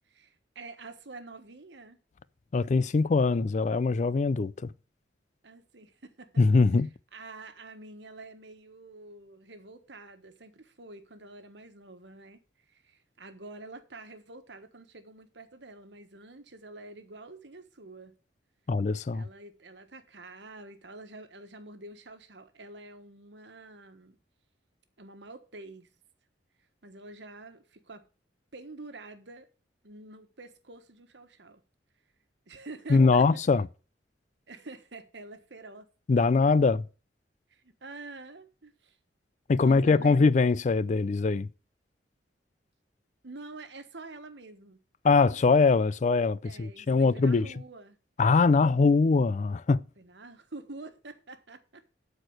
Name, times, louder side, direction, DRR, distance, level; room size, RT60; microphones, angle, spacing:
voice 1, 0.1-2.0 5.4-6.4 7.1-12.4 12.7-18.2 19.1-24.2 25.0-25.9 26.8-28.1 28.5-29.5 29.8-31.6 32.5-33.4 34.5-35.9 36.2-36.3 37.5-39.0 39.5-40.2 43.2-44.8 46.4-48.0 48.5-48.8 50.0-51.9, right 3 dB, 75° right, 1.4 m, -47 dB
voice 2, 2.5-4.7 6.4-6.9 18.7-19.2 32.9-33.7 36.1-36.8 39.5-41.5 45.0-47.5 48.2-49.8, left 4 dB, 40° left, 0.4 m, -22 dB
12.5 x 4.6 x 6.3 m
head